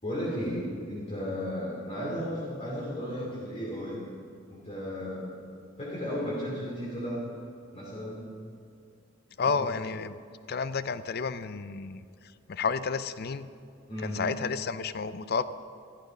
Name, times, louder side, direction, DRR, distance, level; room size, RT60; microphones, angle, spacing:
voice 1, 0.0-4.1 4.5-5.3 5.8-7.2 7.7-8.3 9.4-9.7 13.9-14.2, equal, 35° left, -6 dB, 3.0 m, -34 dB
voice 2, 9.4-10.2 10.5-12.0 12.5-13.5 14.0-15.4, left 5 dB, 55° left, 13 dB, 0.5 m, -31 dB
14.5 x 13.0 x 5.3 m, 2.5 s
head